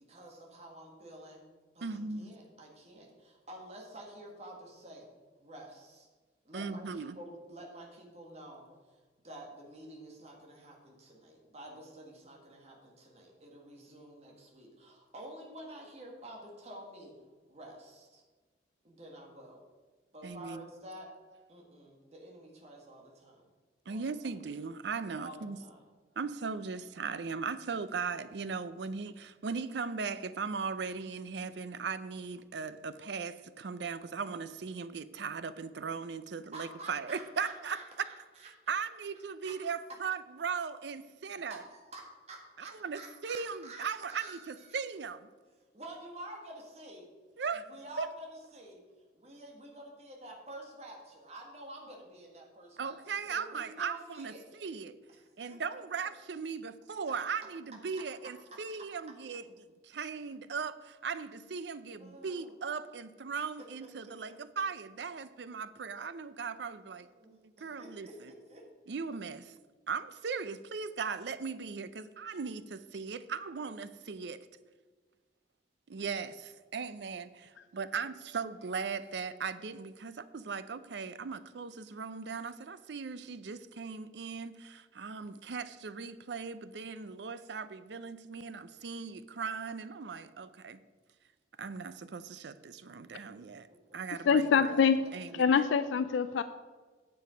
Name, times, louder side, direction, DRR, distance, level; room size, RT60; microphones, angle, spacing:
voice 1, 0.1-1.4 1.7-5.1 5.4-6.1 6.5-17.1 17.5-18.2 18.8-19.6 20.1-21.1 21.5-23.5 23.9-24.0 25.1-25.8 36.5-38.8 39.4-39.5 41.5-44.8 45.7-47.1 47.6-48.3 48.5-48.8 49.1-54.4 55.5-55.6 62.0-62.5 63.8-64.1 67.0-68.6 93.7-94.0, right 1 dB, 35° right, 1.7 m, -49 dB
voice 2, 1.8-2.3 6.5-7.2 20.2-20.7 23.9-25.6 26.2-38.1 38.7-41.6 42.6-45.3 47.4-47.7 48.0-48.1 52.8-55.0 55.4-59.5 59.8-68.3 68.9-69.5 69.9-74.5 75.9-90.8 91.6-93.7 93.9-94.8 95.1-95.6, right 5 dB, 70° right, 0.5 m, -38 dB
voice 3, 94.2-95.1 95.3-96.4, left 6 dB, 90° left, 0.3 m, -25 dB
9.3 x 7.1 x 5.1 m
head